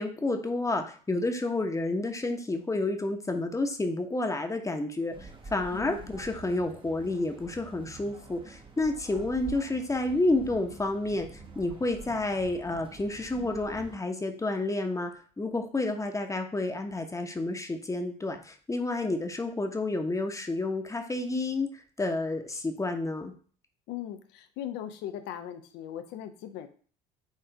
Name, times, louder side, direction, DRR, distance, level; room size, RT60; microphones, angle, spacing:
voice 1, 0.0-11.3 11.5-15.1 15.4-21.7 22.0-23.3, left 2 dB, 15° left, 5 dB, 1.1 m, -30 dB
sound 1, 5.1-14.0, right 3 dB, 25° right, 1.1 m, -47 dB
voice 2, 5.7-6.1 23.9-26.7, left 10 dB, 55° left, 8 dB, 0.9 m, -39 dB
9.0 x 3.7 x 3.5 m, 0.43 s
figure-of-eight pair, 60°, 21 cm